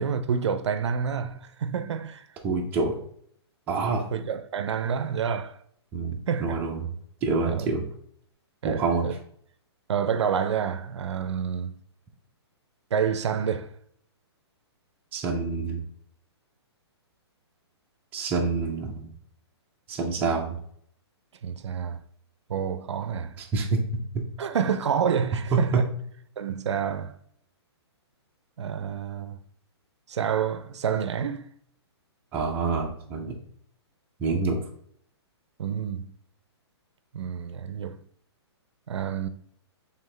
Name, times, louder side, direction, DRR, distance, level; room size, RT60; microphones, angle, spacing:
voice 1, 0.0-2.3 4.1-5.6 6.3-6.5 7.5-7.7 8.6-9.1 9.9-11.7 12.9-13.7 21.4-22.0 22.5-23.4 24.4-25.7 26.4-27.1 28.6-29.4 30.1-31.5 35.6-36.1 37.1-38.0 38.9-39.3, right 7 dB, 80° right, 0.5 m, -28 dB
voice 2, 2.4-3.0 3.7-4.1 5.9-6.9 7.2-7.8 8.6-9.1 15.1-15.8 18.1-19.1 19.9-20.6 23.4-23.8 24.1-24.2 25.5-25.8 32.3-33.4 34.2-34.6, right 4 dB, 10° right, 0.5 m, -27 dB
4.5 x 3.4 x 3.2 m
hypercardioid pair, 165°, 14 cm